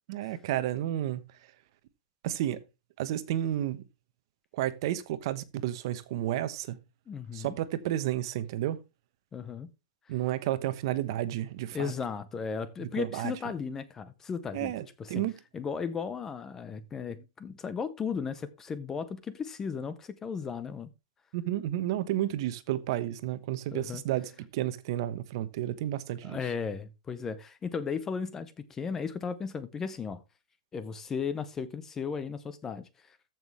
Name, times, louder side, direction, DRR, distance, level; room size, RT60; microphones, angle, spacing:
voice 1, 0.1-1.2 2.2-2.6 3.0-3.8 4.5-6.8 7.3-8.8 10.1-11.9 13.0-13.3 14.5-15.3 21.3-26.4, right 13 dB, 40° right, 1.0 m, -31 dB
voice 2, 7.1-7.6 9.3-9.7 10.1-10.2 11.7-14.7 15.0-15.2 15.5-20.9 23.7-24.0 26.2-30.2 30.7-33.3, left 6 dB, 10° left, 0.6 m, -35 dB
14.5 x 6.1 x 3.2 m
supercardioid pair, 175°, 4 cm